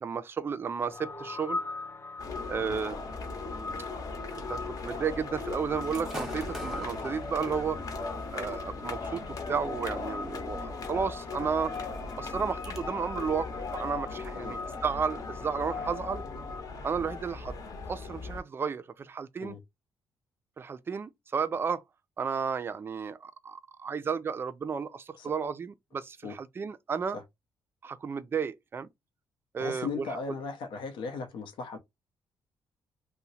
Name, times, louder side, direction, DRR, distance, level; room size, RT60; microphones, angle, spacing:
voice 1, 0.0-1.6 2.5-3.0 4.5-7.8 8.3-11.7 12.2-16.2 16.8-17.5 17.9-19.6 20.6-21.8 22.2-27.2 27.8-28.9 29.5-30.1, right 6 dB, 30° right, 0.3 m, -33 dB
sound 1, 0.8-16.6, left 3 dB, 30° left, 0.5 m, -41 dB
sound 2, 2.2-18.4, left 3 dB, 50° left, 0.8 m, -39 dB
Gunshot gunfire / Fireworks, 5.8-12.8, equal, 5° right, 0.8 m, -47 dB
voice 2, 29.6-31.8, left 5 dB, 90° left, 0.7 m, -37 dB
2.8 x 2.1 x 4.0 m
cardioid pair, 135°, 8 cm